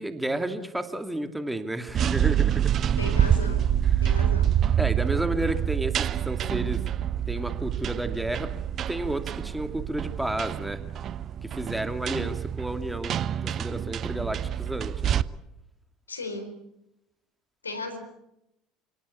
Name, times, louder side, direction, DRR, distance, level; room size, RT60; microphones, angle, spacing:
voice 1, 0.0-2.8 4.0-4.1 4.8-5.9 6.3-6.8 7.3-8.5 8.9-10.8 11.4-15.2, right 1 dB, 5° right, 7 dB, 2.5 m, -31 dB
sound 1, 1.9-15.2, right 10 dB, 40° right, 0.8 m, -26 dB
voice 2, 3.0-3.7 4.0-4.7 16.1-16.6 17.6-18.0, left 2 dB, 85° left, 9 dB, 4.0 m, -35 dB
29.0 x 18.5 x 8.5 m, 0.87 s
figure-of-eight pair, 65°, 0 cm